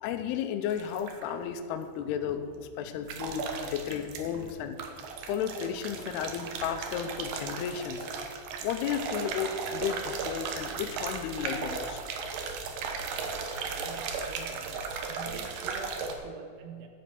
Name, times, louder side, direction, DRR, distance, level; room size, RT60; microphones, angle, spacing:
voice 1, 0.0-4.8 5.3-8.1 8.6-12.0, left 8 dB, 80° left, 7 dB, 2.6 m, -33 dB
sound 1, 0.7-1.3 3.1-4.5 4.8-16.1, right 5 dB, 70° right, 2.3 m, -36 dB
voice 2, 13.7-14.8 15.1-16.9, right 6 dB, 90° right, 5 dB, 1.8 m, -45 dB
11.0 x 7.7 x 7.0 m, 2.3 s
omnidirectional pair, 4.9 m